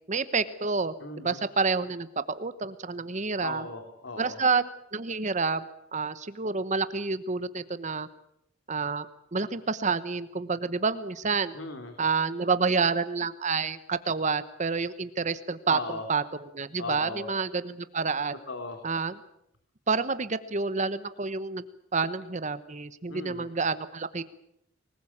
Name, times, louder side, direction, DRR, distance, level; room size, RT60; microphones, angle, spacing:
voice 1, 0.1-3.6 4.2-8.1 8.7-9.1 9.3-11.5 12.0-15.8 16.1-18.3 18.8-19.1 19.9-21.6 21.9-24.2, right 4 dB, 40° right, 13 dB, 1.0 m, -29 dB
voice 2, 1.0-1.4 3.4-4.4 11.5-11.9 15.7-16.1 16.8-17.3 18.5-18.8 23.1-23.5, left 3 dB, 80° left, 5 dB, 3.1 m, -37 dB
24.5 x 20.0 x 8.7 m, 0.77 s
head